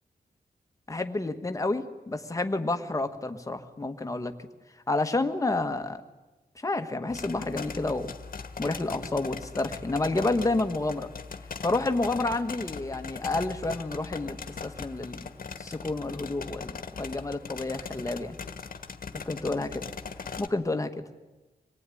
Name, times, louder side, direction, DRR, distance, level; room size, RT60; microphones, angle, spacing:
voice 1, 0.9-4.3 4.9-6.0 6.6-8.1 8.6-11.1 11.6-15.3 15.6-18.4 19.2-19.8 20.4-21.0, left 2 dB, 20° left, 7 dB, 1.5 m, -29 dB
sound 1, 7.1-20.5, left 5 dB, 60° left, 1.5 m, -40 dB
25.5 x 19.5 x 9.9 m, 1.1 s
wide cardioid pair, 180°, 17 cm